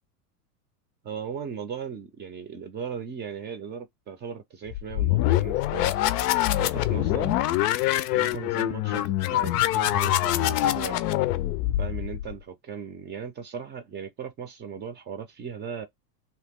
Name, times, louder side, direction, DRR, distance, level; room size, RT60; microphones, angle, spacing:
voice 1, 1.0-5.9 6.6-7.5 8.1-11.0 11.8-15.9, right 7 dB, 20° right, 0.5 m, -37 dB
sound 1, 4.7-12.4, left 14 dB, 70° left, 0.5 m, -25 dB
2.9 x 2.2 x 3.5 m
supercardioid pair, 130°, 49 cm